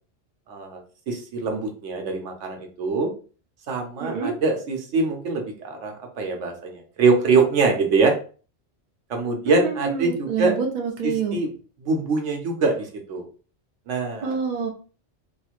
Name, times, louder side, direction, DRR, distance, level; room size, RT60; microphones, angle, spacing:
voice 1, 0.5-3.1 3.7-8.1 9.1-10.5 11.0-11.5 11.8-13.2 13.9-14.4, right 4 dB, 85° right, 2 dB, 1.1 m, -24 dB
voice 2, 4.0-4.3 9.5-11.4 14.2-14.7, right 5 dB, 45° right, 2 dB, 0.7 m, -27 dB
3.0 x 2.6 x 2.4 m, 0.38 s
omnidirectional pair, 1.2 m